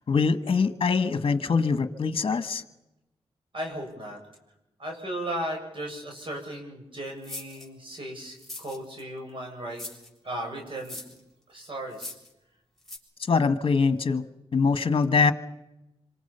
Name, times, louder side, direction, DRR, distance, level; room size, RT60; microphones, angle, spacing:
voice 1, 0.1-2.6 13.3-14.2 14.5-15.3, left 5 dB, 55° left, 10 dB, 1.4 m, -23 dB
voice 2, 3.5-4.2 4.8-9.8 10.2-11.0 11.5-12.1, right 1 dB, 50° right, 1 dB, 7.3 m, -36 dB
sound 1, 7.2-7.7 8.4-9.0 9.7-10.1 10.8-11.2 11.9-12.3 12.8-13.0, left 2 dB, ahead, 6.9 m, -40 dB
26.5 x 25.5 x 5.7 m, 0.93 s
cardioid pair, 80°, 11 cm